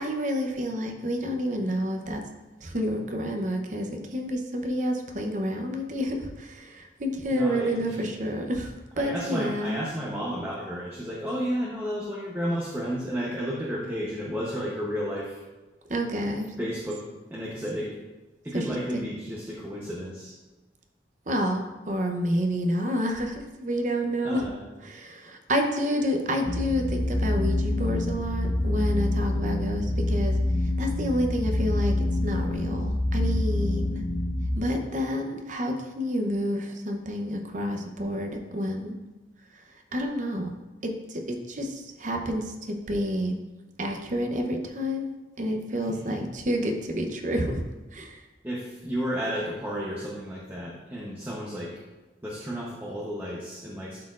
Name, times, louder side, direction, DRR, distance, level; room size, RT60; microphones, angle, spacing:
voice 1, 0.0-2.2 2.6-8.7 9.0-9.8 15.9-16.5 18.5-19.0 21.3-24.4 24.8-30.4 30.8-31.9 32.2-34.0 34.6-38.9 39.9-40.5 41.1-43.4 43.8-45.1 45.4-47.6 47.9-48.2, equal, 45° right, 4 dB, 0.7 m, -29 dB
voice 2, 7.3-8.1 9.0-15.4 16.6-17.0 17.3-17.9 18.4-20.3 24.2-24.6 45.9-46.3 48.4-51.8 52.2-54.0, equal, 10° right, -4 dB, 0.8 m, -32 dB
sound 1, 26.4-34.6, left 1 dB, 75° left, 1.9 m, -26 dB
11.5 x 4.3 x 2.4 m, 1.1 s
head